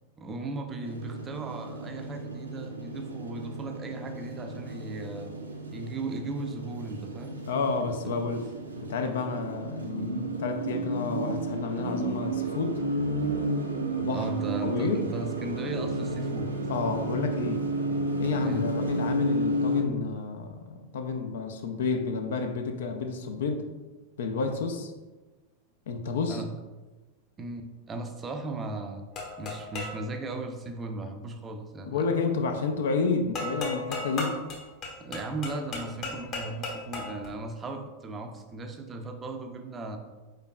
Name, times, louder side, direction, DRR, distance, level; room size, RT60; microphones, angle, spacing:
voice 1, 0.2-5.3 5.7-7.4 8.0-8.2 14.1-16.5 18.4-18.7 26.3-26.5 27.4-29.0 29.4-32.1 35.0-40.0, right 2 dB, 20° right, 5 dB, 0.5 m, -37 dB
sound 1, 0.8-19.8, right 1 dB, 80° right, 0.5 m, -32 dB
voice 2, 7.5-8.4 8.8-12.8 14.0-14.2 14.6-15.1 16.7-17.7 18.2-23.7 24.2-24.9 25.9-26.4 31.9-34.4, left 4 dB, 60° left, 6 dB, 0.5 m, -30 dB
sound 2, 29.1-30.0 33.3-37.3, left 2 dB, 35° left, 1.0 m, -35 dB
5.0 x 4.5 x 2.2 m, 1.2 s
figure-of-eight pair, 90°, 0 cm